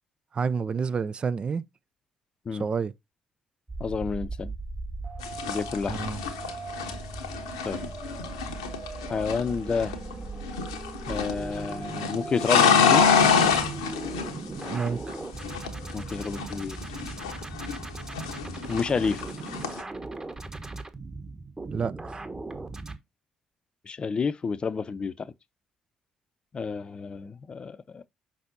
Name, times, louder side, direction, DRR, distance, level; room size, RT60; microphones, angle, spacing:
voice 1, 0.3-1.6 2.5-2.9 5.9-6.2 14.6-15.1 21.7-21.9, right 5 dB, 40° right, 0.5 m, -29 dB
sound 1, 3.7-23.0, right 3 dB, 20° right, 1.3 m, -38 dB
voice 2, 3.8-4.5 5.5-6.0 7.6-7.8 9.1-9.9 11.1-13.1 15.9-16.8 18.7-19.2 23.9-25.3 26.5-28.1, left 5 dB, 40° left, 0.6 m, -29 dB
sound 2, 5.2-10.1 10.4-11.4 11.7-15.1 15.4-17.9 18.1-19.8, left 6 dB, 85° left, 1.0 m, -26 dB
6.2 x 5.7 x 2.7 m
hypercardioid pair, 50°, 3 cm